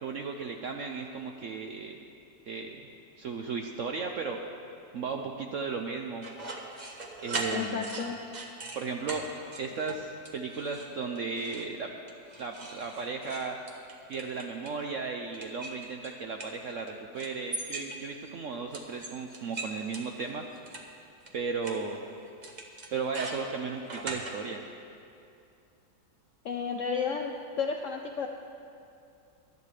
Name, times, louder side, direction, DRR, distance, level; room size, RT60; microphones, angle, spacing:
voice 1, 0.0-2.0 2.5-2.8 3.2-4.4 4.9-6.3 7.2-7.9 8.7-9.3 9.6-11.9 12.4-13.6 14.1-20.4 21.3-22.0 22.9-24.6, right 4 dB, 70° right, 3 dB, 0.7 m, -35 dB
sound 1, 6.2-8.8 9.1-9.2 9.5-10.0 10.2-10.9 11.1-11.7 12.1-14.8 15.3-16.9 17.2-18.3 18.7-20.8 21.3-21.4 21.6-21.7 22.4-24.3, right 2 dB, 30° right, 1.0 m, -39 dB
voice 2, 7.5-8.2 26.4-27.3 27.6-28.3, left 6 dB, 70° left, 3 dB, 0.7 m, -32 dB
19.0 x 12.0 x 3.3 m, 2.6 s
omnidirectional pair, 1.9 m